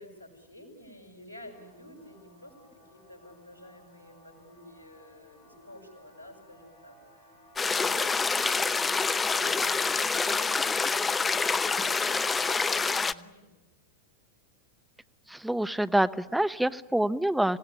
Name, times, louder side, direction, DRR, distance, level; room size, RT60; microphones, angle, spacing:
voice 1, 0.0-13.5, left 1 dB, 85° right, 3 dB, 6.9 m, -50 dB
sound 1, 1.4-12.0, equal, 45° left, 7.5 m, -56 dB
sound 2, 7.6-13.1, left 4 dB, 15° left, 0.8 m, -27 dB
voice 2, 15.3-17.6, right 1 dB, 5° right, 11 dB, 1.1 m, -26 dB
27.5 x 18.0 x 9.9 m, 1.1 s
figure-of-eight pair, 90°, 0 cm